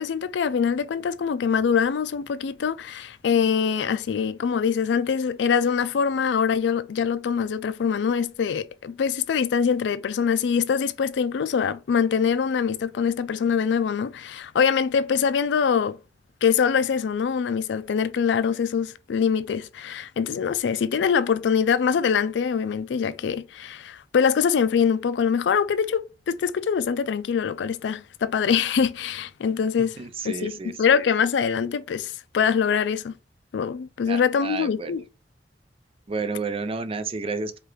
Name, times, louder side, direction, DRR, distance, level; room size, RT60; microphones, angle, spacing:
voice 1, 0.0-16.0 16.4-30.0 30.2-33.1 33.5-35.0, left 6 dB, 75° left, 0.4 m, -24 dB
voice 2, 30.0-30.7 34.1-34.9 36.1-37.6, right 4 dB, 35° right, 0.4 m, -31 dB
4.7 x 2.4 x 3.1 m
head